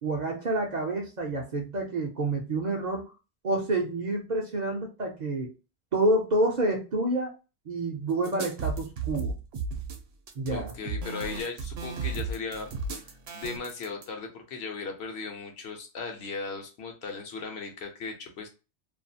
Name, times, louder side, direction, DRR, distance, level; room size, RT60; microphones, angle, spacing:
voice 1, 0.0-3.1 3.4-5.5 5.9-7.3 7.7-9.3 10.4-10.7, right 2 dB, 50° right, 0 dB, 0.5 m, -28 dB
sound 1, 8.2-14.1, right 4 dB, 70° right, 0.8 m, -34 dB
voice 2, 10.5-18.5, left 4 dB, 70° left, 3 dB, 0.9 m, -37 dB
2.5 x 2.3 x 2.6 m, 0.31 s
omnidirectional pair, 1.1 m